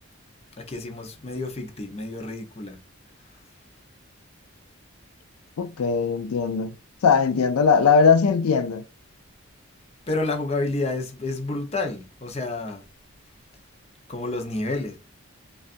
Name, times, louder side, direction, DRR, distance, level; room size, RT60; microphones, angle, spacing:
voice 1, 0.6-2.8 10.1-12.8 14.1-15.0, left 2 dB, 30° left, 0.7 m, -29 dB
voice 2, 5.6-6.7 7.0-8.8, left 5 dB, 85° left, 0.4 m, -20 dB
5.0 x 2.4 x 2.5 m
head